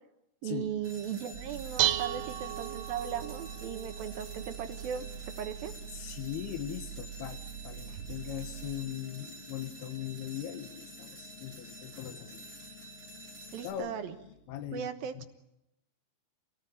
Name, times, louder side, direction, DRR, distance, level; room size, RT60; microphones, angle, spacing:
voice 1, 0.4-5.1 5.4-5.7 13.5-14.2 14.7-15.3, right 9 dB, 70° right, 7 dB, 2.9 m, -37 dB
sound 1, 0.6-14.3, left 9 dB, 35° left, 2.9 m, -54 dB
sound 2, 0.8-13.7, right 2 dB, 30° right, 8.4 m, -50 dB
Dishes pots and pans, 1.3-8.7, right 13 dB, 90° right, 3.2 m, -37 dB
voice 2, 5.9-12.4 13.6-13.9 14.5-14.9 15.1-15.3, left 11 dB, 80° left, 9 dB, 3.3 m, -40 dB
27.0 x 18.0 x 8.8 m, 0.87 s
omnidirectional pair, 4.5 m